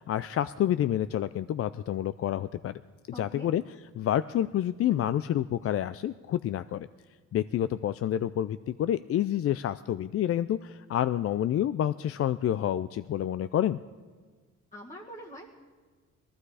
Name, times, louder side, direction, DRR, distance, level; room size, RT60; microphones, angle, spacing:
voice 1, 0.0-2.8 3.2-3.6 3.9-6.9 7.3-13.8, left 11 dB, 50° left, 14 dB, 0.4 m, -28 dB
voice 2, 3.1-3.5 4.9-5.0 14.7-15.5, equal, 25° left, -3 dB, 1.9 m, -44 dB
19.5 x 14.5 x 4.9 m, 1.5 s
cardioid pair, 90°, 30 cm